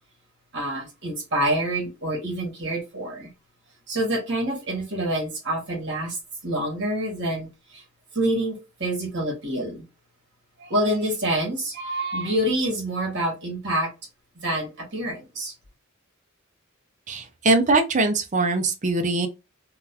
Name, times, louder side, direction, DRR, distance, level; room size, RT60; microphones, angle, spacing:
voice 1, 0.5-3.3 3.9-7.8 8.1-9.9 10.6-13.9 14.4-15.5, right 1 dB, 60° right, 1.7 m, -27 dB
voice 2, 17.1-19.3, right 3 dB, 35° right, 0.6 m, -22 dB
3.7 x 2.3 x 2.8 m
head